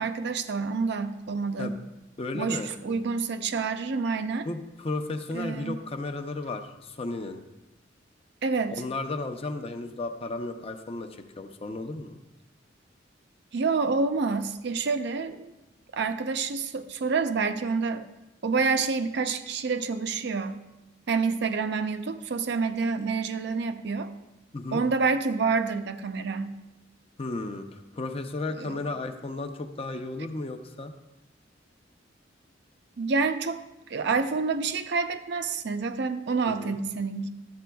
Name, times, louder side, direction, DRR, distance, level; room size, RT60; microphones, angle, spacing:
voice 1, 0.0-1.7 2.3-4.5 5.3-5.8 8.4-8.8 13.5-15.5 15.9-18.0 18.4-20.6 21.1-24.1 24.7-26.6 28.6-28.8 33.0-33.6 33.9-37.3, right 4 dB, 65° right, 9 dB, 0.5 m, -28 dB
voice 2, 1.6-1.9 2.2-2.7 4.4-7.4 8.7-12.2 24.5-24.8 27.2-30.9 36.4-36.8, left 2 dB, 30° left, 6 dB, 0.6 m, -34 dB
13.0 x 8.4 x 2.3 m, 0.98 s
head